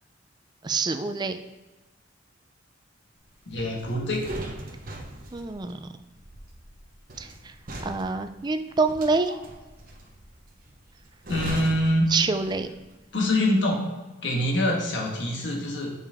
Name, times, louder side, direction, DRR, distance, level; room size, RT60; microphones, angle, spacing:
voice 1, 0.6-1.4 5.3-5.9 7.2-7.5 7.8-9.4 12.1-12.7, right 4 dB, 20° right, 8 dB, 0.4 m, -26 dB
voice 2, 3.5-4.3 11.3-12.1 13.1-13.8 14.2-15.9, left 1 dB, 70° left, -1 dB, 1.4 m, -25 dB
sound 1, 3.5-12.9 13.1-13.4, right 1 dB, 45° right, 0.9 m, -40 dB
6.6 x 5.4 x 3.5 m, 1.1 s
head